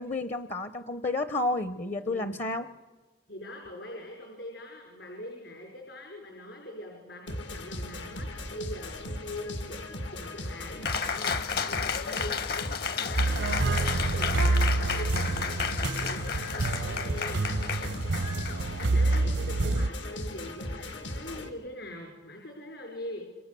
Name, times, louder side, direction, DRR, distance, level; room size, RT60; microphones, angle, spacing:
voice 1, 0.0-2.7, left 2 dB, 40° left, 13 dB, 0.7 m, -31 dB
voice 2, 2.0-2.5 3.3-9.8 10.1-10.8 11.1-12.8 13.1-18.0 18.8-23.2, left 1 dB, 70° left, 1 dB, 5.4 m, -43 dB
sound 1, 7.3-21.5, left 1 dB, 90° left, 2.6 m, -38 dB
Cheering, 10.9-19.8, left 6 dB, 55° left, 1.1 m, -33 dB
sound 2, 13.2-19.9, right 2 dB, 70° right, 0.7 m, -28 dB
28.0 x 25.5 x 6.9 m, 1.3 s
head